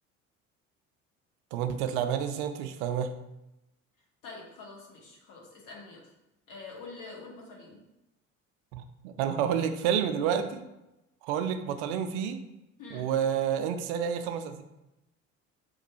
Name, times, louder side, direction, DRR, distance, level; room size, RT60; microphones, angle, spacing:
voice 1, 1.5-3.1 8.7-10.6 11.2-12.4 12.9-14.6, right 8 dB, 60° right, 8 dB, 0.5 m, -29 dB
voice 2, 4.2-6.1 6.5-7.8 12.8-13.1, left 3 dB, 50° left, -1 dB, 1.1 m, -46 dB
3.0 x 2.2 x 4.0 m, 0.94 s
figure-of-eight pair, 60°, 40 cm